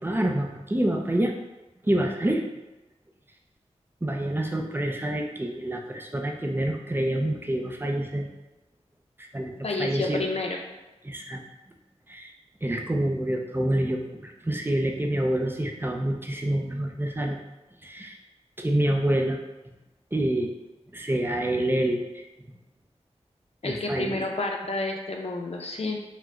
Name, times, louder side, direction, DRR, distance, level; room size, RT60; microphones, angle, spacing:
voice 1, 0.0-1.3 1.8-2.4 4.0-8.3 9.3-10.3 11.0-11.4 12.1-12.3 12.6-17.4 17.8-18.2 18.6-19.4 20.1-20.5 20.9-22.2 23.6-24.2, right 1 dB, 20° right, 1 dB, 0.6 m, -27 dB
voice 2, 9.6-10.6 23.6-26.0, left 2 dB, 60° left, 1 dB, 0.7 m, -30 dB
4.8 x 2.2 x 3.6 m, 1.0 s
wide cardioid pair, 60°, 12 cm